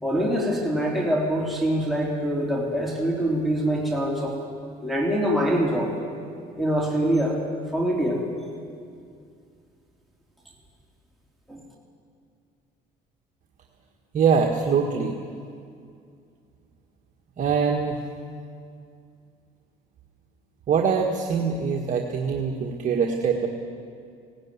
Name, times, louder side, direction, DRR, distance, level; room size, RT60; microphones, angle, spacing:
voice 1, 0.0-4.4 4.8-6.0 6.6-7.4 7.7-8.2 11.5-11.6, equal, ahead, -3 dB, 3.4 m, -24 dB
voice 2, 14.1-15.1 17.4-18.0 20.7-23.5, right 6 dB, 50° right, 1 dB, 1.7 m, -23 dB
18.5 x 17.5 x 9.7 m, 2.3 s
cardioid pair, 110°, 17 cm